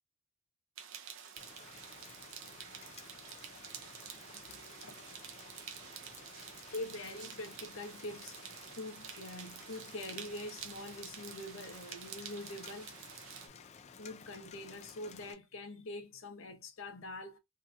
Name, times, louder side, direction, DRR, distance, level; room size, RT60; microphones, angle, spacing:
sound 1, 0.8-13.5, right 8 dB, 65° right, 0.5 m, -49 dB
Rain, 1.4-15.3, left 6 dB, 30° left, 0.3 m, -54 dB
voice 1, 4.5-5.0 6.4-8.4 8.8-13.0 14.0-17.4, left 2 dB, 65° left, 0.7 m, -45 dB
2.7 x 2.4 x 2.4 m
head